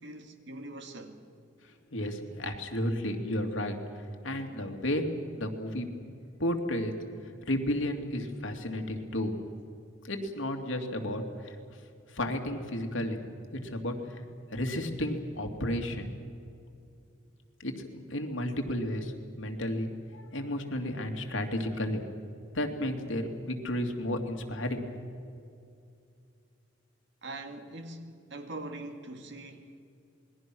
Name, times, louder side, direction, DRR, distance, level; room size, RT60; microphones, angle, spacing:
voice 1, 0.0-1.2 27.2-29.7, right 2 dB, 65° right, 2.3 m, -42 dB
voice 2, 1.9-3.8 4.2-5.1 5.3-5.9 6.4-6.9 7.4-9.3 10.0-11.6 12.1-13.2 13.5-13.9 14.5-16.1 17.6-22.0 22.5-25.0, left 1 dB, 75° left, 2.6 m, -32 dB
28.0 x 21.0 x 6.2 m
head